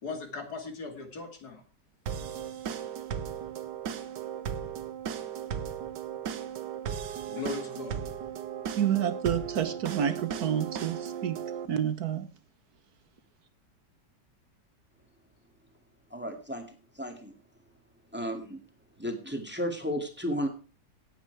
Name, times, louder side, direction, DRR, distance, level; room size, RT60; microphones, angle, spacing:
voice 1, 0.0-1.6 7.3-8.0, left 3 dB, 65° left, 3.1 m, -38 dB
sound 1, 2.1-11.7, right 8 dB, 85° right, 1.7 m, -36 dB
voice 2, 8.8-11.4 11.7-12.3, right 9 dB, 65° right, 1.5 m, -29 dB
voice 3, 16.1-16.7 17.0-17.3 18.1-18.6 19.0-20.5, equal, 5° right, 2.2 m, -33 dB
17.0 x 8.9 x 4.8 m
omnidirectional pair, 1.8 m